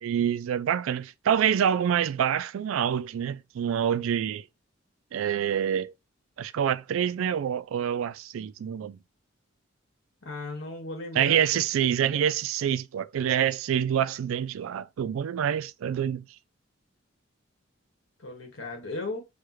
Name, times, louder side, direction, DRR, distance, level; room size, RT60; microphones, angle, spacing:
voice 1, 0.0-4.5 5.1-5.9 6.4-9.0 11.2-16.2, right 9 dB, 85° right, 0.3 m, -26 dB
voice 2, 10.2-11.5 18.2-19.2, left 2 dB, 75° left, 1.5 m, -36 dB
6.3 x 2.2 x 3.0 m
head